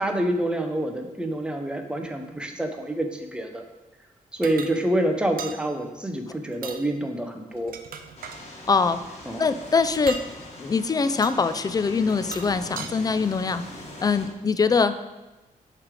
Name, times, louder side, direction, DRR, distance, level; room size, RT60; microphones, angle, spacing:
voice 1, 0.0-3.7 4.3-7.8 9.3-9.5, right 1 dB, 5° right, 4 dB, 0.7 m, -27 dB
sound 1, 4.4-4.7 5.4-5.6 6.5-6.8 7.5-8.4 10.0-10.3 11.2-11.4 12.1-12.9, right 6 dB, 80° right, 0.5 m, -37 dB
sound 2, 8.2-14.3, left 1 dB, 45° left, 1.5 m, -42 dB
voice 2, 8.7-9.0 9.4-10.2 10.6-13.6 14.0-15.0, left 4 dB, 25° left, 12 dB, 0.3 m, -23 dB
7.2 x 3.3 x 4.8 m, 1.1 s
cardioid pair, 95°, 15 cm